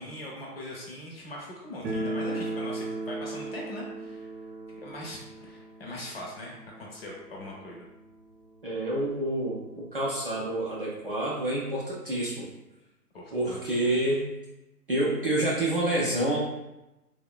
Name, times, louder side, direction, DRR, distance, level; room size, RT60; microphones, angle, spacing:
voice 1, 0.0-4.3 4.8-7.9 13.1-13.6 13.8-14.0, left 1 dB, 40° left, -3 dB, 0.6 m, -41 dB
sound 1, 1.8-8.6 8.8-8.9 9.2-9.3 10.0-10.1 10.4-11.6, right 2 dB, 90° right, 0.6 m, -37 dB
voice 2, 8.6-12.5 13.3-14.3 14.9-16.4, right 1 dB, 40° right, -7 dB, 0.4 m, -28 dB
2.9 x 2.1 x 2.3 m, 0.94 s
figure-of-eight pair, 135°, 48 cm